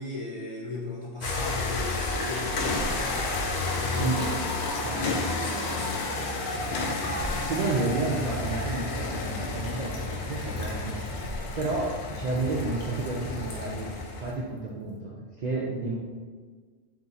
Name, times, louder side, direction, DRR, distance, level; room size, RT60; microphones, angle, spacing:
voice 1, 0.0-4.8 5.2-6.4, left 3 dB, 45° left, -6 dB, 0.4 m, -38 dB
sound 1, 1.2-14.3, left 3 dB, 75° left, 0.9 m, -31 dB
Car, 1.5-2.5 3.2-4.2 4.8-5.8 6.5-7.5 8.1-9.1, right 4 dB, 85° right, 0.9 m, -49 dB
Liquid, 1.7-1.8 2.0-13.9 14.3-14.4, equal, 90° left, 1.1 m, -41 dB
voice 2, 4.0-4.4 4.8-5.4 7.3-13.9 14.2-15.9, right 3 dB, 55° right, -3 dB, 0.5 m, -31 dB
3.8 x 2.7 x 4.0 m, 1.5 s
omnidirectional pair, 1.2 m